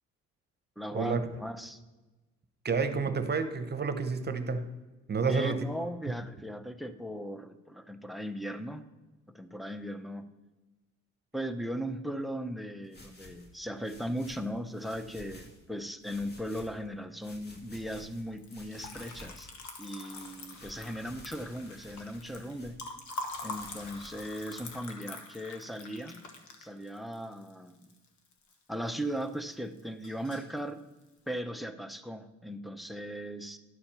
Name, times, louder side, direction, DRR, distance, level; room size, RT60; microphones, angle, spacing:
voice 1, 0.8-1.8 5.2-8.8 9.3-10.3 11.3-19.5 19.8-22.8 23.4-26.2 26.6-27.9 28.7-30.8 31.3-33.6, equal, ahead, 11 dB, 0.6 m, -38 dB
voice 2, 2.6-4.7 5.1-5.6, right 5 dB, 35° right, 9 dB, 0.9 m, -29 dB
sound 1, 12.8-15.6 16.0-16.9 17.2-19.5 19.9-22.8 23.3-24.8, left 1 dB, 35° left, 1.8 m, -53 dB
Liquid, 18.3-28.5 28.9-29.5 29.8-30.6, left 3 dB, 70° left, 1.4 m, -44 dB
11.0 x 4.3 x 6.8 m, 1.2 s
cardioid pair, 90°, 30 cm